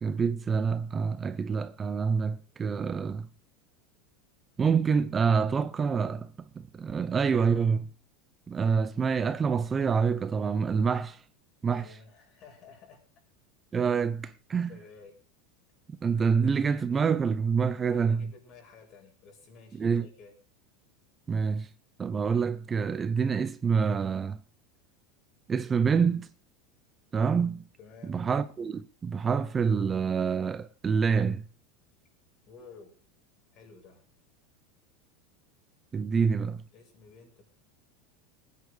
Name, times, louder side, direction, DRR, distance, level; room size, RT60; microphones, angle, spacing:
voice 1, 0.0-3.3 4.6-7.9 8.5-11.2 11.6-11.8 13.7-14.8 16.0-18.2 19.8-20.1 21.3-21.7 22.0-24.4 25.5-26.3 27.1-27.6 28.0-31.4 35.9-36.6, right 6 dB, 20° right, 0.6 m, -27 dB
voice 2, 11.6-13.0 14.7-15.2 17.8-20.3 27.8-28.2 32.5-32.9 33.5-34.0 36.2-36.3 36.7-37.5, left 5 dB, 45° left, 6.6 m, -52 dB
19.0 x 9.6 x 5.0 m
supercardioid pair, 135°, 0 cm